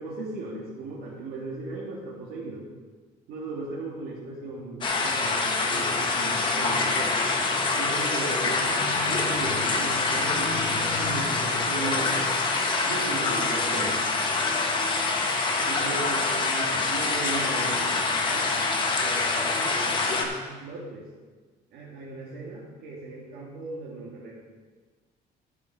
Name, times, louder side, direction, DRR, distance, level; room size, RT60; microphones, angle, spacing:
voice 1, 0.0-2.6 3.3-7.1 7.7-8.8 9.0-12.3 12.9-14.0 15.7-18.6 19.0-21.1 21.7-24.4, right 3 dB, 75° right, -7 dB, 2.4 m, -37 dB
sound 1, 4.8-20.2, left 3 dB, 30° left, 1.1 m, -25 dB
Wind instrument woodwind instrument, 12.2-20.1, equal, 5° left, 1.8 m, -47 dB
13.5 x 6.4 x 4.9 m, 1.4 s
cardioid pair, 175°, 17 cm